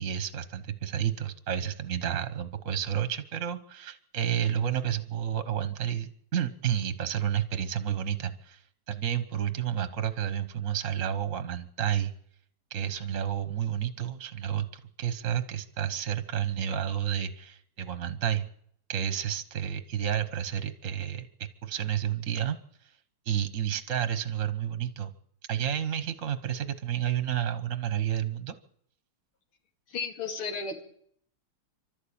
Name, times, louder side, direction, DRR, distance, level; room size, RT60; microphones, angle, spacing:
voice 1, 0.0-12.1 12.7-18.5 18.9-22.6 23.2-25.1 25.5-28.5, right 9 dB, 45° right, 11 dB, 1.3 m, -30 dB
voice 2, 29.9-30.8, left 4 dB, 80° left, 4 dB, 3.5 m, -34 dB
29.0 x 12.5 x 8.7 m, 0.68 s
omnidirectional pair, 2.3 m